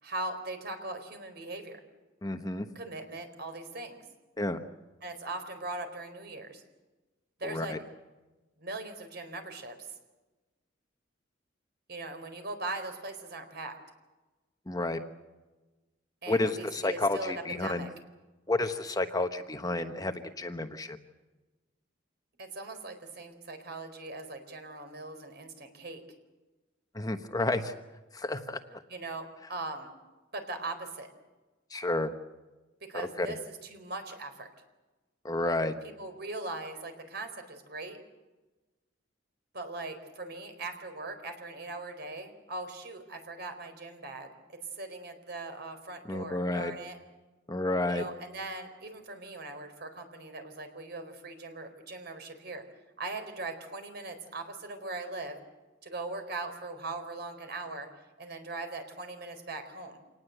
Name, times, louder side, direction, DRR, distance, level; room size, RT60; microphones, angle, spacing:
voice 1, 0.0-1.8 2.7-4.0 5.0-6.6 7.4-7.7 8.6-9.8 11.9-13.8 16.2-17.9 22.4-26.0 28.9-29.9 30.3-31.1 32.9-34.5 36.0-38.0 39.5-44.3 44.7-47.0 47.9-52.6 53.0-55.4 55.8-57.9 58.2-60.0, right 2 dB, 60° right, 7 dB, 4.3 m, -40 dB
voice 2, 2.2-2.6 4.4-4.6 7.4-7.8 14.7-15.0 16.3-17.9 18.5-21.0 26.9-27.7 28.1-28.8 31.7-32.1 32.9-33.3 35.2-35.7 46.1-46.7 47.5-48.0, left 2 dB, 20° left, 7 dB, 1.1 m, -31 dB
27.5 x 19.0 x 8.0 m, 1.2 s
head